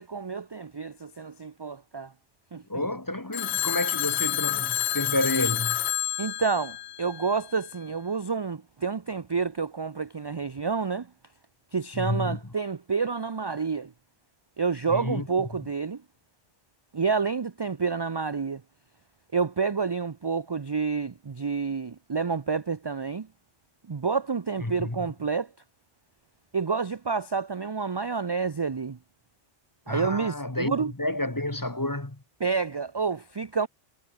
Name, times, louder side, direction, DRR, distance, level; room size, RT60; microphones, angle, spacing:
voice 1, 0.0-2.1 2.5-2.8 6.2-11.1 11.7-13.9 14.6-16.0 16.9-18.6 19.3-23.3 23.9-25.5 26.5-29.0 29.9-30.9 32.4-33.7, right 5 dB, 35° right, 0.4 m, -29 dB
voice 2, 2.7-5.8 11.9-12.4 14.9-15.3 24.6-25.1 29.9-32.2, left 1 dB, 15° left, 1.6 m, -30 dB
Telephone, 3.3-7.6, left 12 dB, 65° left, 0.8 m, -29 dB
omnidirectional pair, 1.2 m